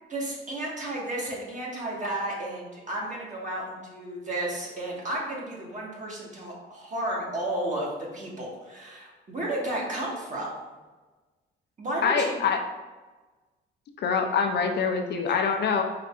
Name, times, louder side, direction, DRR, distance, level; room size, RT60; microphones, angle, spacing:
voice 1, 0.1-10.5 11.8-12.4 15.3-15.4, right 1 dB, 40° right, -4 dB, 1.5 m, -33 dB
voice 2, 12.0-12.6 14.0-15.8, left 5 dB, 60° left, 4 dB, 0.5 m, -25 dB
4.7 x 3.3 x 2.5 m, 1.2 s
cardioid pair, 90°, 20 cm